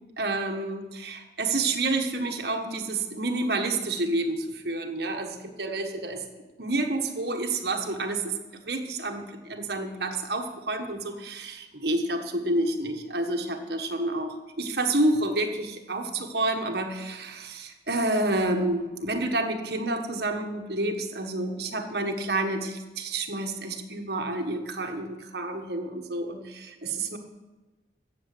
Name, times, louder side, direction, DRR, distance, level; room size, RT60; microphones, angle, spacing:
voice 1, 0.2-6.2 6.6-8.3 8.6-27.2, right 2 dB, 60° right, 3 dB, 1.5 m, -29 dB
15.0 x 7.3 x 8.5 m, 1.2 s
head